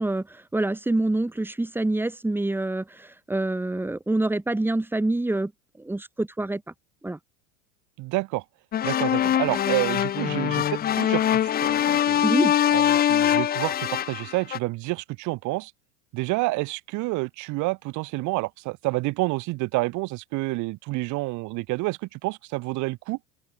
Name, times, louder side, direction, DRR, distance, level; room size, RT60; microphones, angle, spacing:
voice 1, 0.0-5.5 5.8-6.6 7.0-7.2 12.2-12.5, right 2 dB, 5° right, 1.4 m, -26 dB
voice 2, 8.0-8.4 8.8-12.3 12.7-15.7 16.1-23.2, right 22 dB, 55° right, 1.6 m, -29 dB
sound 1, 8.7-14.6, left 11 dB, 25° left, 0.6 m, -23 dB
open air
supercardioid pair, 110°, 36 cm